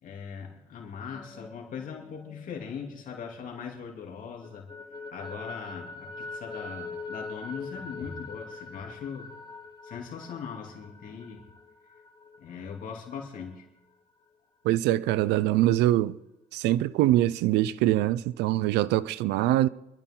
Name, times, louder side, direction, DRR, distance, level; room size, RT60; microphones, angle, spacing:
voice 1, 0.0-4.7 5.1-9.3 9.8-11.5 12.4-13.7, left 6 dB, 55° left, 3.0 m, -40 dB
sound 1, 1.0-3.8 4.1-13.6, left 3 dB, 25° left, 1.6 m, -44 dB
voice 2, 14.6-16.1 16.5-19.7, right 14 dB, 85° right, 0.5 m, -23 dB
26.0 x 12.5 x 3.8 m
cardioid pair, 110°, 17 cm